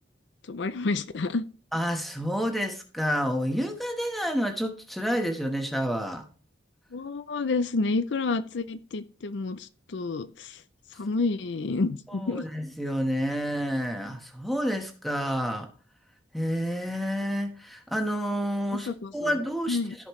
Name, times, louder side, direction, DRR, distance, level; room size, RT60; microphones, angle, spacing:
voice 1, 0.5-1.4 6.9-10.6 10.9-12.4 18.7-19.3 19.7-20.0, left 3 dB, 70° left, 11 dB, 0.5 m, -29 dB
voice 2, 1.7-6.2 12.1-15.7 16.3-19.8, equal, ahead, 3 dB, 1.2 m, -29 dB
14.5 x 5.3 x 3.2 m, 0.38 s
head